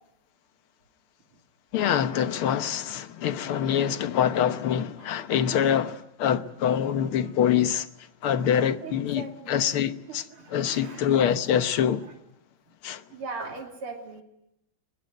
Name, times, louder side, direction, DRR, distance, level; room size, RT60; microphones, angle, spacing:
voice 1, 1.7-7.9 8.2-10.2 10.5-12.1 12.8-13.0, left 9 dB, 80° left, 2.0 m, -25 dB
voice 2, 5.0-5.3 8.5-9.6 10.1-11.1 11.5-11.6 12.0-12.2 13.1-14.2, right 4 dB, 85° right, 3.8 m, -40 dB
22.0 x 21.0 x 9.3 m
omnidirectional pair, 2.4 m